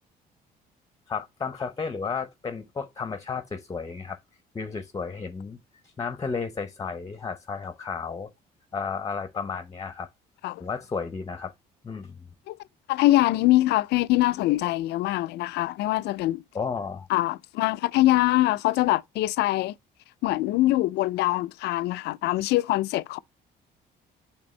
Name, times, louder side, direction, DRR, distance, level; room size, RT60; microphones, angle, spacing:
voice 1, 1.1-4.2 4.5-5.6 6.0-8.3 8.7-10.1 10.6-11.5 11.8-12.2 16.5-17.1, left 5 dB, 20° left, 0.8 m, -33 dB
voice 2, 12.9-16.4 17.1-19.7 20.2-23.2, left 17 dB, 80° left, 0.4 m, -23 dB
8.7 x 3.5 x 3.2 m
cardioid pair, 110°, 17 cm